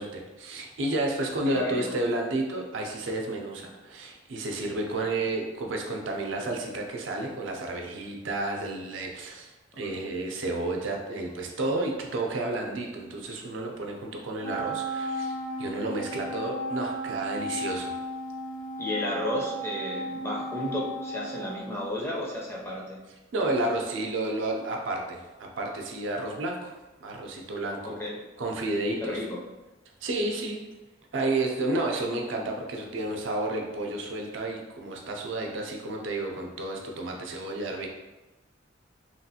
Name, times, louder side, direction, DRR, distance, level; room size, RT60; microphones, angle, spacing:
voice 1, 0.0-17.9 23.3-26.7 27.0-28.0 28.4-29.2 30.0-30.6 31.1-37.9, right 2 dB, 80° right, 1 dB, 0.5 m, -31 dB
voice 2, 1.5-1.9 5.0-5.1 9.9-10.0 18.8-23.0 27.8-28.2 29.0-29.4, left 1 dB, 15° left, -4 dB, 0.4 m, -33 dB
Wind instrument woodwind instrument, 14.4-22.1, right 1 dB, 70° left, 0.6 m, -35 dB
3.0 x 2.3 x 2.7 m, 1.1 s
head